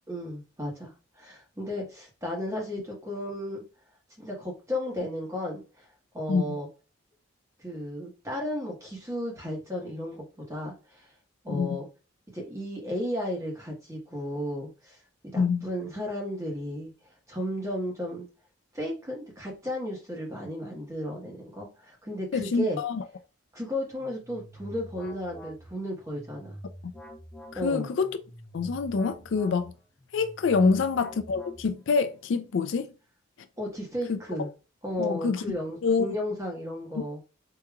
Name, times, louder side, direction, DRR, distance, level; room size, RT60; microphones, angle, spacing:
voice 1, 0.1-3.6 4.2-5.9 6.1-6.7 7.6-11.1 11.4-11.9 12.3-15.0 15.2-16.9 17.3-18.3 18.7-22.8 23.5-26.6 27.5-27.9 30.6-30.8 33.6-34.5 34.8-37.2, equal, 15° right, 1.2 m, -34 dB
voice 2, 15.4-15.7 22.3-23.0 27.5-28.2 28.5-29.7 30.1-32.9 34.1-34.2 35.0-35.4 35.8-36.1, left 5 dB, 70° left, 0.4 m, -26 dB
sound 1, 24.0-32.0, equal, 5° left, 0.7 m, -46 dB
4.9 x 2.8 x 2.3 m
head